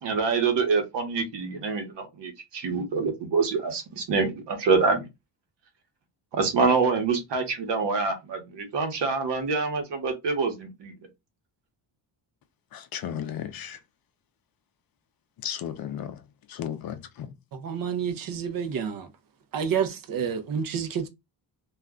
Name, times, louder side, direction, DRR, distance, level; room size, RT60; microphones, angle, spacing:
voice 1, 0.0-5.1 6.3-10.9, right 4 dB, 65° right, 1.0 m, -26 dB
voice 2, 12.7-13.8 15.4-16.1 16.5-16.9, left 9 dB, 55° left, 0.5 m, -34 dB
voice 3, 17.6-19.1 19.5-21.1, right 7 dB, 50° right, 0.5 m, -29 dB
2.4 x 2.1 x 3.5 m
cardioid pair, 150°, 45 cm